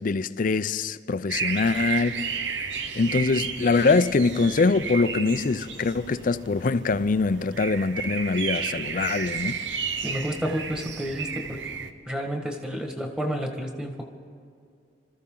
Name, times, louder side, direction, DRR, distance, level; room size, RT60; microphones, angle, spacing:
voice 1, 0.0-2.2 2.9-9.6, left 4 dB, 50° left, 0.5 m, -23 dB
sound 1, 1.3-11.9, right 6 dB, 85° right, 0.9 m, -33 dB
voice 2, 10.0-11.6 12.1-14.1, equal, 5° right, 1.5 m, -30 dB
26.0 x 14.0 x 3.9 m
head